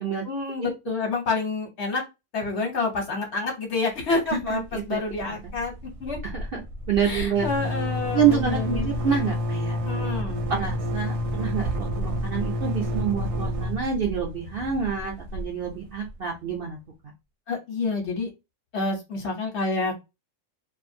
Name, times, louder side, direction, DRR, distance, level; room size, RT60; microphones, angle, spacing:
voice 1, 0.2-2.0 2.3-4.6 4.9-5.7 6.0-6.2 7.0-8.9 9.9-10.5 17.5-18.3 18.7-20.0, left 3 dB, 55° left, 1 dB, 1.0 m, -28 dB
voice 2, 4.3-5.0 5.4-5.5 6.2-6.6 6.9-7.5 8.1-9.8 10.2-16.8, right 7 dB, 55° right, -1 dB, 0.7 m, -27 dB
sound 1, 4.3-4.8 5.1-5.2 5.5-16.1, equal, 75° right, 1.0 m, -29 dB
2.5 x 2.4 x 2.6 m, 0.24 s
omnidirectional pair, 1.5 m